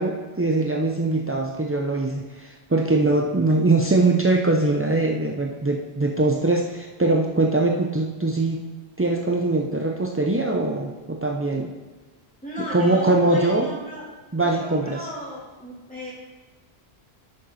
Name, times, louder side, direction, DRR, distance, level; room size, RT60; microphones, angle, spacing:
voice 1, 0.0-8.6 9.0-11.7 12.7-13.7 14.3-15.1, right 2 dB, 25° right, 0 dB, 0.3 m, -22 dB
voice 2, 12.4-14.1 14.4-16.1, equal, 5° left, -8 dB, 3.3 m, -35 dB
10.5 x 6.6 x 4.1 m, 1.3 s
omnidirectional pair, 1.1 m